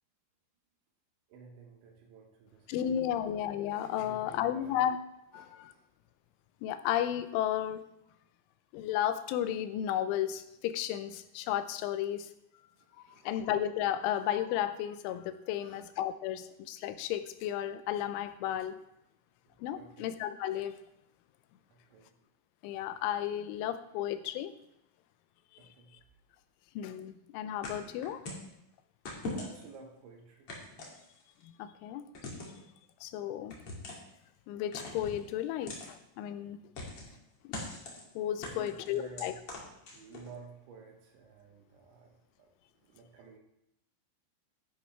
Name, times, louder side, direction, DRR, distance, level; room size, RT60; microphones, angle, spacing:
voice 1, 1.3-3.2 3.9-4.8 5.3-5.8 12.8-13.4 15.6-15.8 19.5-20.1 21.7-22.2 25.6-26.0 29.3-30.5 38.0-38.1 38.4-39.3 39.9-43.4, right 5 dB, 75° right, 1 dB, 3.3 m, -53 dB
voice 2, 2.7-5.0 5.3-5.7 6.6-7.8 8.7-12.3 13.0-18.8 19.6-20.8 22.6-24.5 25.5-25.7 26.8-28.2 31.4-32.1 33.0-33.6 34.5-36.6 37.7-37.8 38.2-39.4, left 11 dB, 80° left, 11 dB, 3.1 m, -33 dB
sound 1, 27.6-28.5 29.1-29.8 30.5-31.4 32.1-32.6 33.5-34.1 34.7-35.2 35.7-35.9 36.8-37.2 37.5-38.0 38.4-40.3, left 2 dB, 45° left, 2.0 m, -41 dB
11.5 x 10.5 x 3.3 m, 0.82 s
omnidirectional pair, 5.7 m